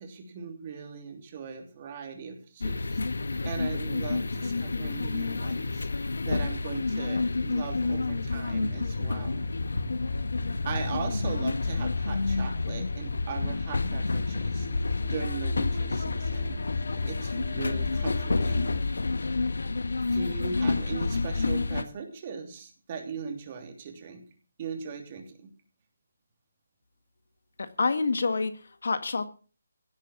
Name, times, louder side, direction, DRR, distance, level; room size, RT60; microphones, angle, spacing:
voice 1, 0.0-3.0 3.4-5.9 6.2-9.4 10.6-14.7 15.1-16.6 17.0-18.8 20.1-24.2 24.6-25.4, right 6 dB, 25° right, 3 dB, 3.2 m, -39 dB
sound 1, 2.6-21.8, left 3 dB, 80° left, 1.5 m, -29 dB
sound 2, 7.6-18.8, left 4 dB, 40° left, 2.7 m, -36 dB
voice 2, 27.6-29.3, left 4 dB, 60° left, 11 dB, 1.6 m, -28 dB
17.0 x 8.5 x 7.3 m, 0.39 s
hypercardioid pair, 175°, 0 cm